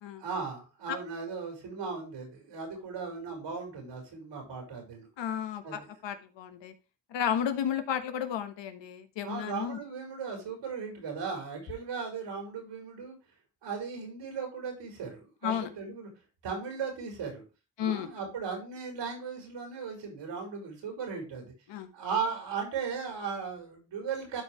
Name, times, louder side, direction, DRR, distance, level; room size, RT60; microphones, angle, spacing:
voice 1, 0.2-5.1 5.6-5.9 9.2-13.2 13.6-16.1 16.4-17.4 17.8-21.5 21.9-24.4, right 5 dB, 85° right, 2 dB, 4.5 m, -37 dB
voice 2, 5.2-6.7 7.1-9.8 15.4-15.7 17.8-18.1 21.7-21.9, left 9 dB, 90° left, 8 dB, 1.3 m, -33 dB
12.5 x 4.7 x 3.2 m, 0.30 s
cardioid pair, 80°, 42 cm